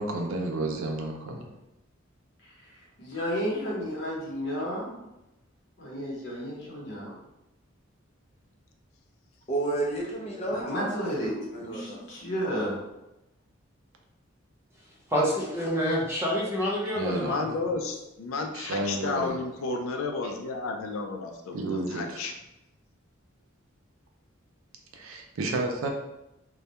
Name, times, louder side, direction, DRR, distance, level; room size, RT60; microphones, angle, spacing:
voice 1, 0.0-1.5 16.9-17.6 18.5-19.4 21.5-22.2 24.9-25.9, right 2 dB, 75° right, 2 dB, 0.4 m, -31 dB
voice 2, 2.4-4.9 5.8-7.1 10.5-12.8, equal, 65° left, -5 dB, 0.9 m, -32 dB
voice 3, 9.5-12.0, right 2 dB, 30° left, -2 dB, 0.5 m, -32 dB
voice 4, 15.1-17.5, equal, 15° right, -5 dB, 0.5 m, -27 dB
voice 5, 17.0-22.3, left 3 dB, 80° left, 4 dB, 0.3 m, -32 dB
2.2 x 2.1 x 2.8 m, 0.93 s
head